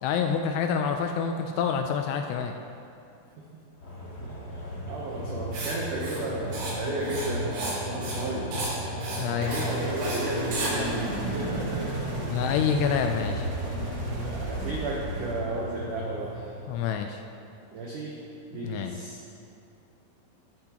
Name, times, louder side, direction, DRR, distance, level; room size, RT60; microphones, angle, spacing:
voice 1, 0.0-2.5 9.2-9.6 12.3-13.5 16.7-17.2 18.6-19.0, left 7 dB, 85° left, 4 dB, 2.5 m, -27 dB
sound 1, 3.8-16.8, equal, 50° left, 1.1 m, -36 dB
voice 2, 4.2-8.5 9.3-12.1 14.2-16.5 17.7-18.2 18.5-19.2, right 2 dB, 90° right, -3 dB, 1.8 m, -34 dB
Writing, 5.5-5.7 6.0-6.2 6.5-6.7 7.0-7.8 8.0-8.2 8.5-8.7 9.0-9.2 9.5-9.7 10.0-10.2 10.5-10.7, right 2 dB, 75° right, 4.6 m, -34 dB
sound 2, 9.4-15.9, right 1 dB, 55° right, 1.1 m, -34 dB
12.0 x 11.5 x 2.9 m, 2.6 s
omnidirectional pair, 5.2 m